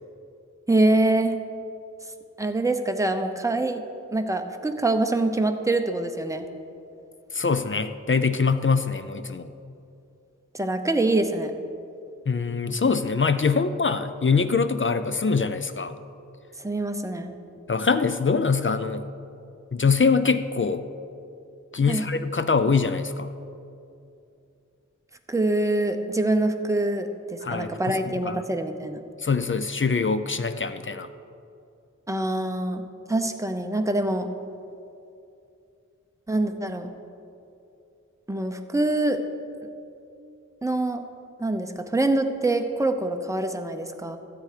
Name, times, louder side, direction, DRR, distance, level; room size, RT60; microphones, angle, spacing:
voice 1, 0.7-1.4 2.4-3.8 4.1-6.5 10.5-11.5 16.6-17.3 21.9-22.1 25.3-29.0 32.1-34.3 36.3-36.9 38.3-39.2 40.6-41.0 41.4-44.2, right 2 dB, 10° right, 6 dB, 0.7 m, -25 dB
voice 2, 7.3-9.5 12.3-15.9 17.7-19.0 19.7-20.8 21.7-23.3 27.4-28.4 29.2-31.1, left 5 dB, 40° left, 10 dB, 0.5 m, -23 dB
13.5 x 8.0 x 5.0 m, 2.6 s
wide cardioid pair, 45°, 30 cm